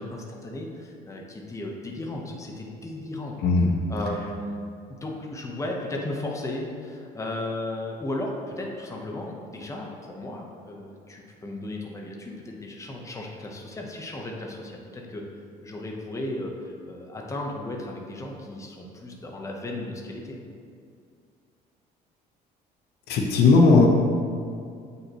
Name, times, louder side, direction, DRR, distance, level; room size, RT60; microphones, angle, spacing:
voice 1, 0.0-3.3 3.9-4.6 4.9-15.3 15.6-20.4, left 1 dB, 20° left, 0 dB, 0.9 m, -35 dB
voice 2, 23.1-23.9, left 3 dB, 75° left, 1 dB, 0.9 m, -17 dB
8.1 x 5.4 x 3.0 m, 2.3 s
cardioid pair, 110°, 17 cm